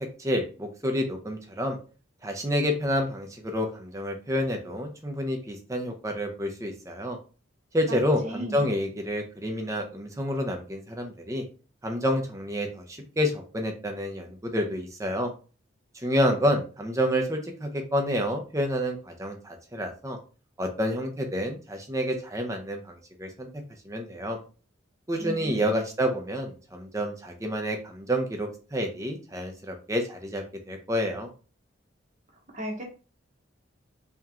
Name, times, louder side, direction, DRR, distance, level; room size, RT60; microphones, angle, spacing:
voice 1, 0.2-1.8 2.2-7.2 7.7-11.4 11.8-15.3 16.0-20.2 20.6-23.5 23.9-24.4 25.1-31.3, equal, 15° right, 3 dB, 0.6 m, -29 dB
voice 2, 7.9-8.6 25.2-25.7 32.5-32.8, right 1 dB, 35° right, 1 dB, 1.1 m, -36 dB
3.5 x 2.9 x 3.6 m, 0.37 s
head